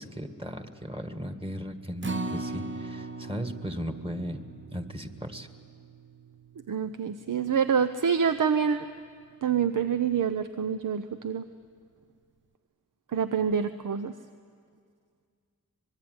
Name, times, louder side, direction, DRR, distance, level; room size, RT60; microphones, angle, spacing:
voice 1, 0.0-4.4 4.7-5.5, equal, 15° right, 7 dB, 1.9 m, -36 dB
Acoustic guitar, 2.0-8.3 8.7-8.8 9.2-9.3, right 3 dB, 35° right, 0.9 m, -39 dB
voice 2, 6.7-8.9 9.4-11.4 13.1-14.1, right 7 dB, 70° right, 10 dB, 0.8 m, -26 dB
25.0 x 22.0 x 9.6 m, 2.1 s
wide cardioid pair, 80°, 32 cm